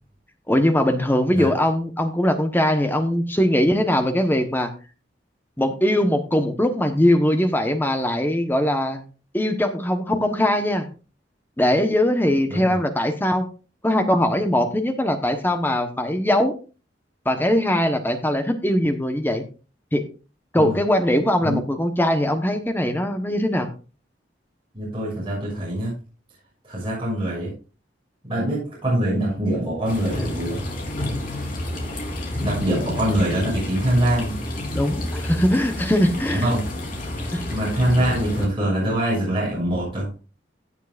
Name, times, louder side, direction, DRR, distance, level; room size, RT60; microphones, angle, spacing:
voice 1, 0.5-4.7 5.6-9.0 9.3-10.9 11.6-13.4 13.8-16.5 17.2-19.4 19.9-20.0 20.5-23.7 34.7-36.5 37.3-37.4, left 1 dB, 10° left, 6 dB, 1.0 m, -21 dB
voice 2, 24.7-25.9 26.6-27.5 28.3-30.6 32.4-34.4 36.3-36.7 37.5-40.1, right 1 dB, 30° right, -6 dB, 6.5 m, -23 dB
sound 1, 29.9-38.5, left 1 dB, 50° left, 3.5 m, -29 dB
16.5 x 7.4 x 2.5 m, 0.34 s
head